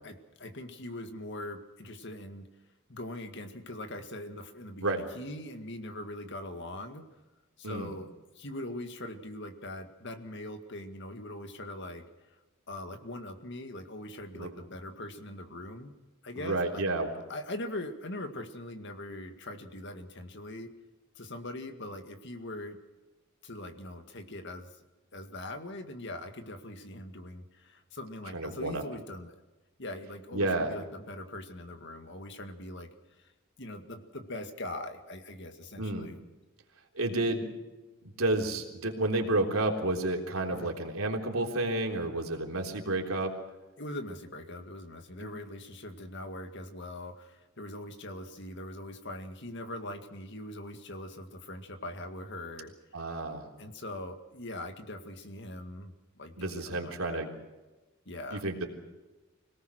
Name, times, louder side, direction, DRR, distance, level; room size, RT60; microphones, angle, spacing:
voice 1, 0.0-2.5 2.9-7.0 7.6-8.1 8.4-12.4 12.7-15.9 16.2-16.9 17.3-20.7 21.2-22.8 23.4-24.7 25.1-29.4 29.8-33.3 33.6-36.2 40.5-40.7 43.8-52.7 53.6-57.2 58.1-58.4, left 1 dB, 55° left, 7 dB, 2.0 m, -41 dB
voice 2, 16.4-17.1 28.3-28.8 30.3-30.7 35.8-36.1 37.0-37.5 38.0-43.3 45.2-45.3 52.9-53.4 56.4-57.3 58.3-58.7, right 2 dB, 90° right, 1 dB, 3.6 m, -30 dB
25.5 x 18.5 x 6.4 m, 1.2 s
head